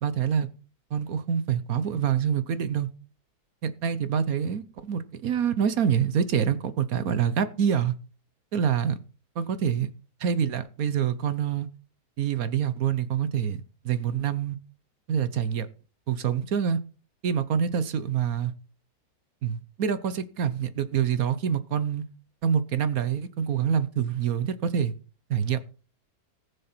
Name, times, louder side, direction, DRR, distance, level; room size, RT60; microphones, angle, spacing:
voice 1, 0.0-0.5 0.9-2.9 3.6-7.9 8.5-9.0 9.4-9.9 10.2-11.7 12.2-14.6 15.1-15.7 16.1-16.8 17.2-18.5 19.4-22.1 22.4-24.9 25.3-25.6, right 8 dB, 65° right, 1.3 m, -26 dB
19.0 x 6.8 x 4.4 m
omnidirectional pair, 1.7 m